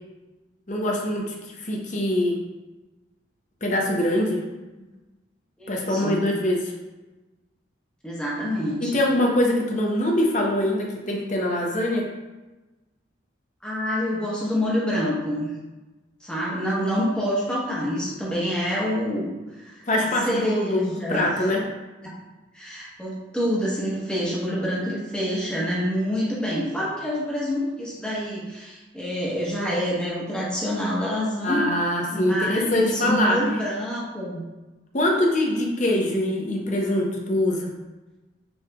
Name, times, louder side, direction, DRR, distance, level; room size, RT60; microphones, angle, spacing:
voice 1, 0.7-2.4 3.6-4.4 5.7-6.6 8.8-12.1 19.9-21.6 31.4-33.4 34.9-37.7, left 1 dB, 40° left, 0 dB, 0.7 m, -23 dB
voice 2, 5.6-6.2 8.0-8.9 13.6-15.5 16.2-19.8 20.2-21.5 22.0-22.2 22.5-31.7 32.1-34.4, equal, 5° left, -6 dB, 1.0 m, -27 dB
6.2 x 3.2 x 2.3 m, 1.1 s
head